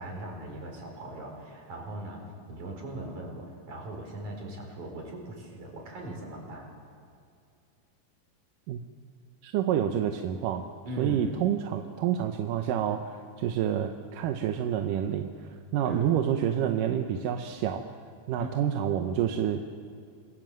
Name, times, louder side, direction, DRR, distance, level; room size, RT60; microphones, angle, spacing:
voice 1, 0.0-2.2 2.5-6.7 10.9-11.3 15.8-16.2 18.4-18.5, right 1 dB, 65° right, 1 dB, 6.0 m, -39 dB
voice 2, 9.4-10.6 11.0-15.3 15.7-17.8 18.3-19.7, right 9 dB, 90° right, 5 dB, 2.6 m, -28 dB
27.0 x 20.5 x 7.6 m, 2.4 s
omnidirectional pair, 3.7 m